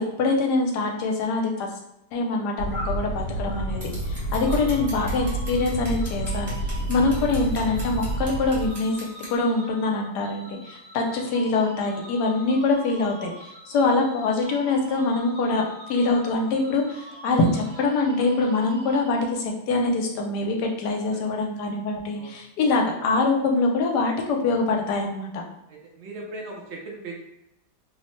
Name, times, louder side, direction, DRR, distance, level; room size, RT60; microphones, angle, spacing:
voice 1, 0.0-1.7 2.1-6.5 6.9-9.0 9.3-15.6 15.9-25.4, left 3 dB, 75° left, 1 dB, 1.1 m, -24 dB
sound 1, 2.6-8.7, right 1 dB, 45° left, 0.9 m, -29 dB
Scissors, 3.8-9.3, right 1 dB, 20° right, 0.8 m, -42 dB
sound 2, 4.4-19.6, right 2 dB, 65° right, 0.9 m, -44 dB
voice 2, 4.5-4.8 7.2-7.3 11.1-11.2 13.7-13.9 21.1-21.2 22.1-22.3 25.7-27.2, right 2 dB, 85° right, -2 dB, 0.6 m, -39 dB
3.0 x 2.0 x 3.0 m, 0.85 s
omnidirectional pair, 1.8 m